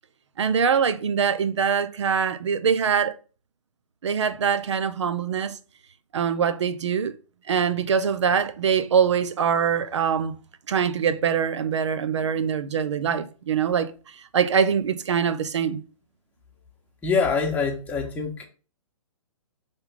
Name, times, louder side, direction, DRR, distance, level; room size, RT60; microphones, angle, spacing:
voice 1, 0.4-3.1 4.0-5.6 6.1-7.1 7.5-10.3 10.7-13.9 14.3-15.8, right 7 dB, 55° right, 0.8 m, -23 dB
voice 2, 17.0-18.5, left 5 dB, 10° left, 1.3 m, -24 dB
5.6 x 3.5 x 5.6 m
figure-of-eight pair, 125°, 17 cm